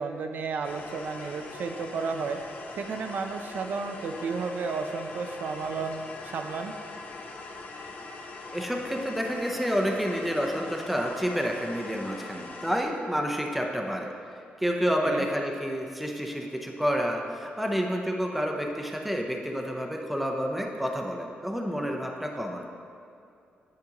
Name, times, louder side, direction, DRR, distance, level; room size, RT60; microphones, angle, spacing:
voice 1, 0.0-2.4 2.8-6.7 15.0-15.3, right 4 dB, 60° right, 5 dB, 0.4 m, -32 dB
sound 1, 0.6-12.8, left 3 dB, 50° left, 0.6 m, -42 dB
voice 2, 8.5-14.1 14.6-22.6, equal, 5° right, 2 dB, 0.5 m, -29 dB
9.3 x 5.1 x 2.9 m, 2.6 s
wide cardioid pair, 145°, 4 cm